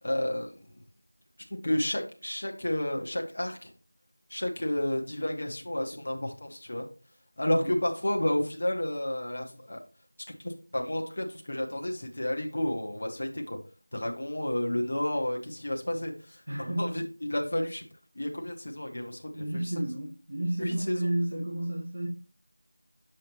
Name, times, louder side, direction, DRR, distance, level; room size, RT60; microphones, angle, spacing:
voice 1, 0.0-0.7 1.5-3.7 4.3-6.9 7.4-9.8 10.3-13.6 13.9-17.0 17.3-17.8 18.1-19.7 20.6-21.1, left 1 dB, 30° left, 2 dB, 0.8 m, -31 dB
voice 2, 16.5-16.9 19.3-22.1, right 1 dB, 45° right, -5 dB, 1.6 m, -31 dB
7.4 x 5.4 x 2.9 m, 0.38 s
figure-of-eight pair, 180°, 0 cm